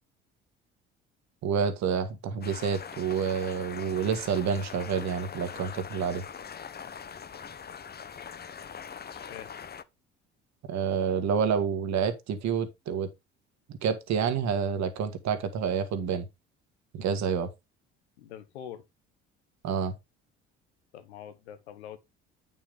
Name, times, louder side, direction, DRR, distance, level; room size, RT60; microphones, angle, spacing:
voice 1, 1.4-6.2 10.7-13.1 13.8-16.3 16.9-17.5 19.6-19.9, right 7 dB, 60° right, 1.8 m, -28 dB
sound 1, 2.4-9.8, left 7 dB, 30° left, 0.9 m, -42 dB
voice 2, 9.1-9.5 18.2-18.8 20.9-22.0, left 9 dB, 90° left, 1.2 m, -44 dB
8.7 x 5.6 x 3.6 m
hypercardioid pair, 60°, 32 cm